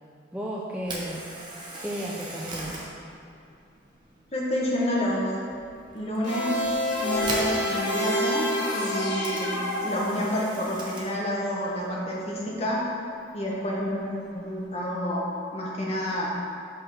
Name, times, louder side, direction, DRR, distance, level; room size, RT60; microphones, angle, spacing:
voice 1, 0.3-1.3 1.8-2.8, equal, 5° right, -5 dB, 0.5 m, -33 dB
Camera, 0.8-14.8, right 1 dB, 25° right, 1.0 m, -42 dB
voice 2, 4.3-5.4 5.9-6.6 7.0-12.9 13.3-16.4, left 1 dB, 30° left, -4 dB, 1.3 m, -29 dB
sound 1, 6.2-10.6, equal, 60° left, 1.4 m, -28 dB
5.9 x 5.4 x 6.0 m, 2.4 s
head